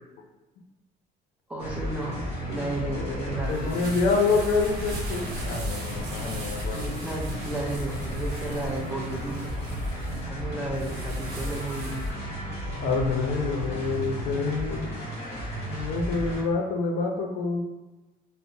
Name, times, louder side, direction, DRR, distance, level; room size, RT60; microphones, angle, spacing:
voice 1, 1.5-2.2 2.5-3.9 6.7-9.5 10.3-12.2, right 2 dB, 5° right, -3 dB, 0.6 m, -33 dB
sound 1, 1.6-16.4, equal, 40° left, 1.2 m, -33 dB
voice 2, 2.8-3.2 3.5-6.8 12.8-14.9 15.7-17.6, left 4 dB, 75° left, 1 dB, 0.5 m, -27 dB
sound 2, 3.1-12.1, right 1 dB, 70° right, 0.8 m, -41 dB
2.7 x 2.0 x 2.6 m, 1.1 s
cardioid pair, 110°, 17 cm